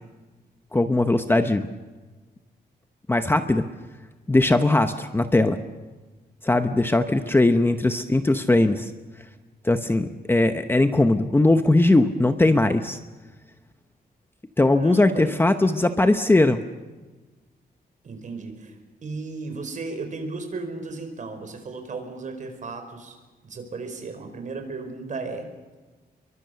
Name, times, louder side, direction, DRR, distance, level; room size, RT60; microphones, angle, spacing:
voice 1, 0.7-1.6 3.1-3.6 4.3-5.6 6.4-8.9 9.6-13.0 14.6-16.6, left 2 dB, 15° left, 8 dB, 0.9 m, -20 dB
voice 2, 14.7-15.4 18.0-18.8 19.0-23.2 23.4-25.5, right 3 dB, 45° right, 6 dB, 4.8 m, -35 dB
29.0 x 23.5 x 6.9 m, 1.3 s
wide cardioid pair, 165°, 17 cm